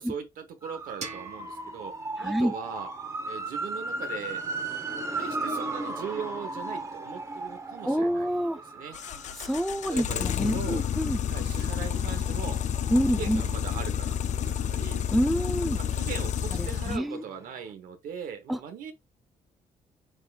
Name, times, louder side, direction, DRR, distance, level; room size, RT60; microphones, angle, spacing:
voice 1, 0.0-2.9 3.2-4.4 5.1-9.0 9.9-10.8 11.3-12.6 13.1-14.2 14.4-15.0 15.8-18.9, right 7 dB, 80° right, 1.1 m, -39 dB
sound 1, 0.6-14.4 14.7-17.3 17.6-17.7, right 2 dB, 20° right, 0.9 m, -37 dB
sound 2, 1.0-3.8, right 5 dB, 55° right, 0.9 m, -46 dB
voice 2, 2.2-2.5 7.8-8.6 9.4-11.2 12.9-13.4 15.1-15.8 16.5-17.2 18.5-18.6, equal, ahead, 0.5 m, -27 dB
sound 3, 8.9-17.0, left 9 dB, 55° left, 0.4 m, -30 dB
5.3 x 3.5 x 2.4 m
cardioid pair, 100°, 14 cm